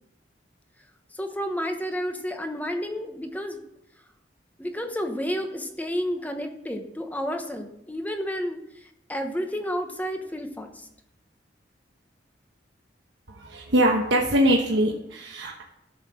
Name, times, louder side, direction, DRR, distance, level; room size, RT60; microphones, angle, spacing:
voice 1, 1.2-3.6 4.6-8.6 9.1-10.8, equal, 10° left, 5 dB, 1.0 m, -31 dB
voice 2, 13.3-15.6, right 1 dB, 80° right, 0 dB, 1.1 m, -23 dB
13.0 x 5.7 x 6.2 m, 0.82 s
head